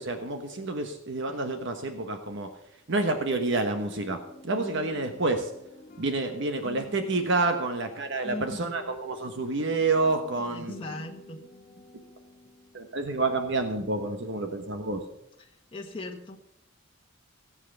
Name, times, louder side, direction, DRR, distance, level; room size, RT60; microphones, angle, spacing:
voice 1, 0.0-2.5 2.9-4.2 4.4-5.5 6.0-10.7 12.7-15.1, right 3 dB, 60° right, 6 dB, 1.2 m, -28 dB
sound 1, 3.2-13.2 13.6-14.3, left 2 dB, 40° left, 1.8 m, -48 dB
voice 2, 8.2-8.9 10.4-11.4 11.8-11.9 15.4-16.4, left 1 dB, 25° left, 0 dB, 1.3 m, -40 dB
17.5 x 7.6 x 6.8 m, 0.82 s
head